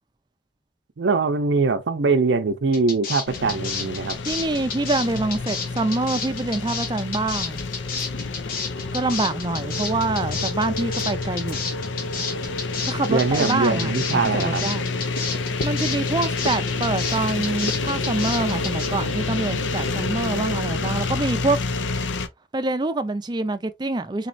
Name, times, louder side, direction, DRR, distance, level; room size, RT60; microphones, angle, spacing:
voice 1, 1.0-4.2 13.1-14.7, right 4 dB, 80° right, 0.6 m, -22 dB
sound 1, 2.7-18.9, left 5 dB, 50° left, 0.9 m, -31 dB
sound 2, 3.3-22.3, left 3 dB, 85° left, 0.5 m, -28 dB
voice 2, 4.2-7.6 8.9-11.6 12.9-13.9 14.3-14.8 15.6-21.6 22.5-24.3, right 2 dB, 25° right, 0.4 m, -25 dB
4.1 x 3.0 x 2.5 m
head